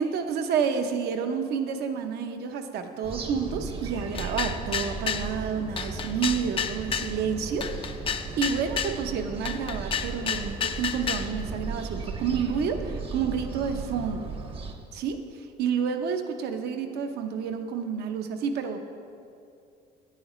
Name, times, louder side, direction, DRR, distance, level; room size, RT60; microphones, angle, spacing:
voice 1, 0.0-7.7 8.4-14.3 14.9-15.2 15.6-18.8, right 6 dB, 70° right, 6 dB, 0.7 m, -29 dB
sound 1, 3.0-14.8, right 5 dB, 30° right, 0.7 m, -36 dB
sound 2, 4.1-5.3 5.8-7.1 7.6-9.0 9.4-11.3, left 7 dB, 30° left, 0.4 m, -30 dB
9.8 x 9.0 x 3.1 m, 2.5 s
cardioid pair, 110°, 17 cm